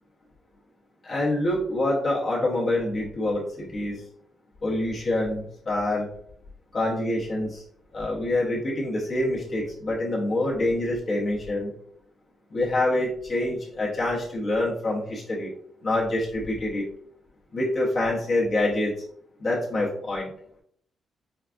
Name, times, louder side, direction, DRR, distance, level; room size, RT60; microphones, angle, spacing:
voice 1, 1.0-4.0 4.6-6.1 6.7-7.6 7.9-11.7 12.5-15.5 15.8-16.8 17.5-18.9 19.4-20.3, left 1 dB, 45° left, -4 dB, 0.8 m, -26 dB
4.6 x 2.4 x 2.4 m, 0.64 s
cardioid pair, 110°, 0 cm